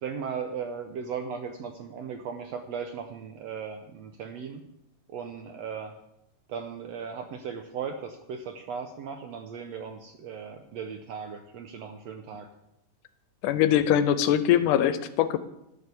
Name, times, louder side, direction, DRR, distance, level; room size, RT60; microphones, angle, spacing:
voice 1, 0.0-4.6 5.1-5.9 6.5-12.5, right 6 dB, 75° right, 5 dB, 1.5 m, -37 dB
voice 2, 13.4-15.4, left 10 dB, 80° left, 13 dB, 2.0 m, -22 dB
12.0 x 6.8 x 6.9 m, 0.86 s
omnidirectional pair, 3.8 m